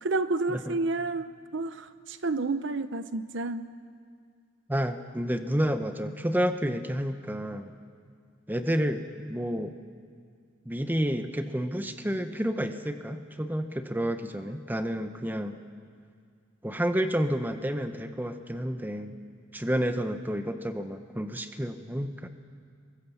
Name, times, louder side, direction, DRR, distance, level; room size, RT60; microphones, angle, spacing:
voice 1, 0.0-3.7, right 3 dB, 70° right, 12 dB, 0.8 m, -30 dB
voice 2, 4.7-7.7 8.5-9.0 9.3-9.8 10.6-15.6 16.6-19.1 19.5-22.3, equal, 10° right, 8 dB, 1.0 m, -30 dB
23.5 x 23.5 x 7.2 m, 2.1 s
head